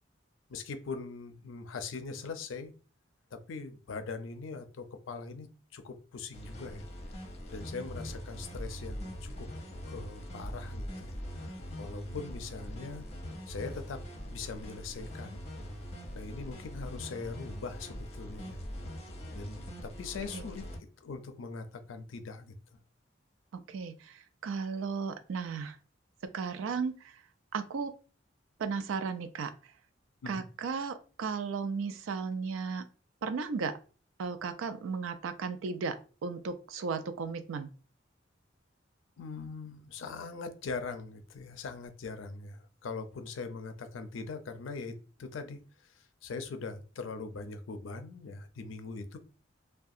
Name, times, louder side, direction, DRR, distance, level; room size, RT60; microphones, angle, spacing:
voice 1, 0.5-2.7 3.3-6.8 7.5-9.5 9.9-13.1 13.5-14.0 14.3-15.5 16.1-18.6 19.3-20.6 21.0-22.5 30.2-30.4 39.2-49.2, left 4 dB, 80° left, 0.4 m, -41 dB
sound 1, 6.3-20.8, equal, 35° left, 0.7 m, -42 dB
voice 2, 23.5-25.8 26.3-27.2 27.5-27.9 28.6-29.7 30.3-32.8 33.2-33.7 34.2-36.0 36.2-37.7, right 5 dB, 90° right, 0.4 m, -35 dB
2.4 x 2.2 x 2.6 m
head